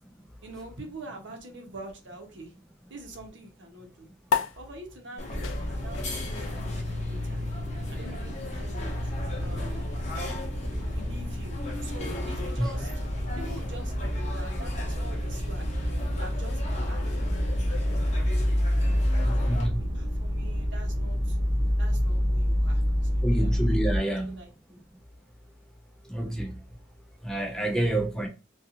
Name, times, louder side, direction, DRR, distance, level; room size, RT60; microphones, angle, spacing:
voice 1, 0.4-2.5 2.9-4.1 4.6-6.6 6.9-7.4 7.9-9.1 9.4-9.8 10.7-13.0 13.4-15.7 16.1-18.3 18.7-21.4 21.8-22.8 23.1-23.5 24.0-24.8, right 1 dB, 70° right, 0.8 m, -45 dB
sound 1, 4.3-11.1, left 6 dB, 80° left, 0.3 m, -37 dB
sound 2, 5.2-19.7, left 2 dB, 35° left, 0.7 m, -39 dB
sound 3, 5.3-24.0, equal, 25° right, 0.8 m, -28 dB
voice 2, 19.5-19.8 23.2-24.3 26.1-26.5 27.2-28.3, right 1 dB, 5° left, 0.3 m, -27 dB
2.5 x 2.3 x 2.7 m
head